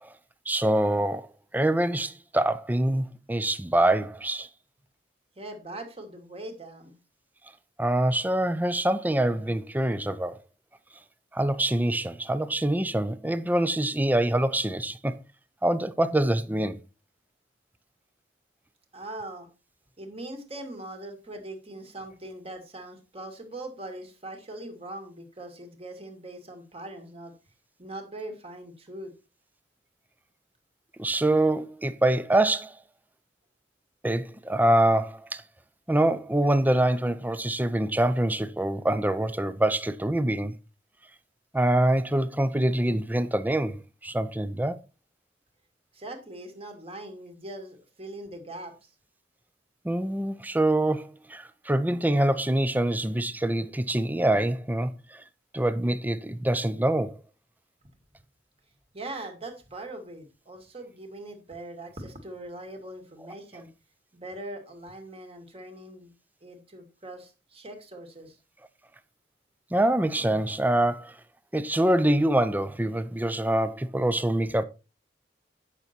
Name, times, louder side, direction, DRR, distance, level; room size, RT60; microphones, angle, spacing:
voice 1, 0.5-1.3 1.5-4.5 7.8-10.4 11.3-15.2 15.6-16.8 31.0-32.8 34.0-35.4 35.9-40.6 41.5-44.8 49.8-55.2 55.5-57.2 69.7-71.1 71.5-74.6, right 1 dB, 10° right, 0.6 m, -25 dB
voice 2, 5.4-7.0 18.9-19.5 20.0-27.3 27.8-29.1 45.9-48.7 58.9-63.7 64.1-66.1 66.4-68.4, right 1 dB, 35° right, 2.3 m, -41 dB
9.7 x 6.7 x 4.5 m
head